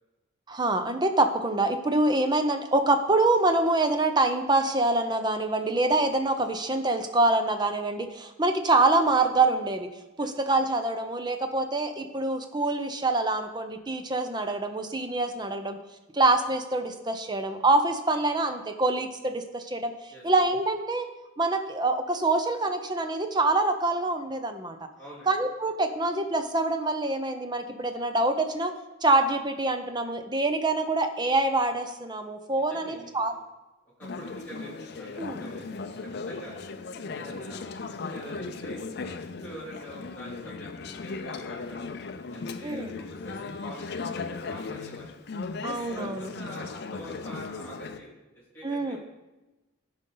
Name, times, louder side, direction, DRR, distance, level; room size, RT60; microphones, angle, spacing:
voice 1, 0.5-9.9 10.2-15.8 16.1-21.1 21.4-24.8 25.3-28.7 29.0-33.3 35.2-35.4 42.6-42.9 45.6-46.3 48.6-49.0, right 2 dB, 20° right, 7 dB, 0.6 m, -25 dB
voice 2, 24.9-25.3 32.5-33.4 34.0-35.9 36.3-36.5 37.1-37.6 37.9-39.1 39.4-41.9 42.3-44.0 44.3-45.1 45.9-48.1 48.3-49.0, right 1 dB, 10° left, -8 dB, 3.0 m, -45 dB
Conversation / Chatter, 34.0-48.0, left 4 dB, 50° left, 0.5 m, -37 dB
14.0 x 5.2 x 3.9 m, 1.1 s
head